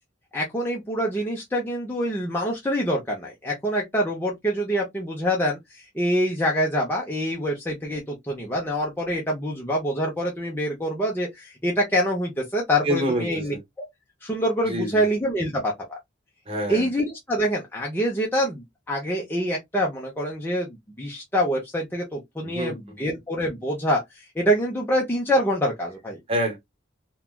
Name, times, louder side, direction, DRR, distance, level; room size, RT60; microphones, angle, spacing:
voice 1, 0.3-13.9 14.2-16.0 16.7-26.2, equal, 10° left, 0.6 m, -26 dB
voice 2, 12.8-13.6 14.6-15.0 16.5-16.9 22.4-23.0 26.3-26.6, equal, 30° right, 1.0 m, -27 dB
3.1 x 2.2 x 2.2 m
head